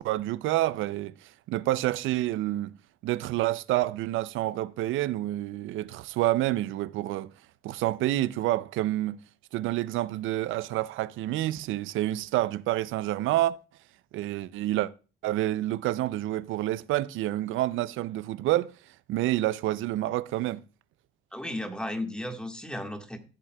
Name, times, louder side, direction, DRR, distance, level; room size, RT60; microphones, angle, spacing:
voice 1, 0.0-2.8 3.0-7.3 7.6-9.2 9.5-13.6 14.1-14.9 15.2-18.7 19.1-20.6, right 15 dB, 85° right, 0.5 m, -28 dB
voice 2, 21.3-23.2, left 1 dB, 5° left, 1.4 m, -34 dB
14.5 x 7.4 x 2.2 m
cardioid pair, 90°, 20 cm